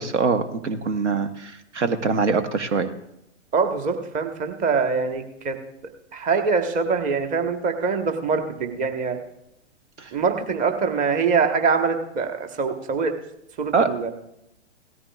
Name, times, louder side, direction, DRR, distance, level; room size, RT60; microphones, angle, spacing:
voice 1, 0.0-2.9 10.0-10.1 13.7-14.1, right 4 dB, 75° right, 10 dB, 1.1 m, -24 dB
voice 2, 3.5-5.6 6.1-9.2 10.1-13.1 13.6-14.1, right 5 dB, 20° right, 6 dB, 1.2 m, -24 dB
17.0 x 14.0 x 2.3 m, 0.81 s
figure-of-eight pair, 115°, 36 cm